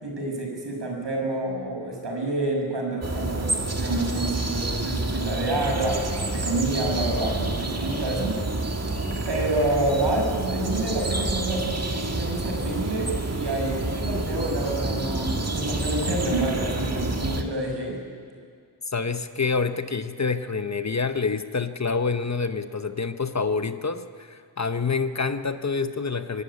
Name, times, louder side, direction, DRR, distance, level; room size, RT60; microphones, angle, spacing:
voice 1, 0.0-6.0 6.3-8.4 9.3-18.0, right 2 dB, 70° right, 0 dB, 5.9 m, -28 dB
sound 1, 3.0-17.4, right 2 dB, 35° right, 1.8 m, -28 dB
voice 2, 18.9-26.4, left 4 dB, 40° left, 10 dB, 1.0 m, -27 dB
24.5 x 12.0 x 9.7 m, 2.1 s
wide cardioid pair, 65°, 44 cm